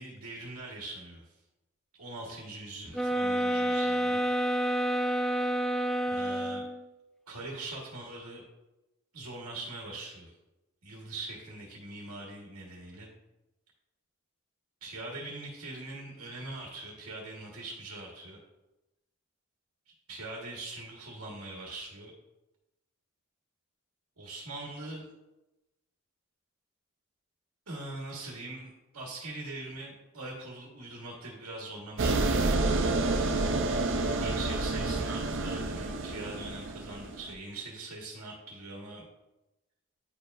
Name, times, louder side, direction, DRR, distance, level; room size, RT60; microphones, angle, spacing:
voice 1, 0.0-1.3 2.0-4.2 6.1-6.6 7.3-8.4 9.1-10.3 10.8-13.1 14.8-18.4 20.1-22.1 24.2-25.1 27.7-32.6 34.2-39.0, right 2 dB, 85° right, -2 dB, 1.4 m, -42 dB
sound 1, 2.9-6.8, equal, ahead, 0.3 m, -29 dB
sound 2, 32.0-37.3, right 2 dB, 55° right, 0.6 m, -29 dB
9.7 x 4.6 x 2.5 m, 0.99 s
head